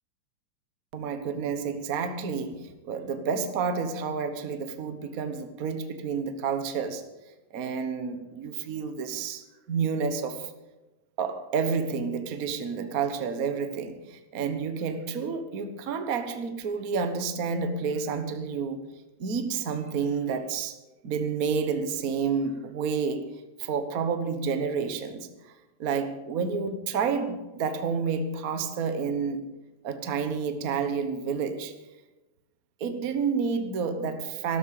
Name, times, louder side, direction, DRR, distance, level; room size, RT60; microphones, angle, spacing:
voice 1, 0.9-7.0 7.5-10.5 11.2-18.8 19.2-20.8 21.0-23.2 23.6-25.5 25.8-29.4 29.8-31.7 32.8-34.6, right 5 dB, 50° right, 8 dB, 1.0 m, -30 dB
13.0 x 12.5 x 6.6 m, 1.1 s
omnidirectional pair, 3.3 m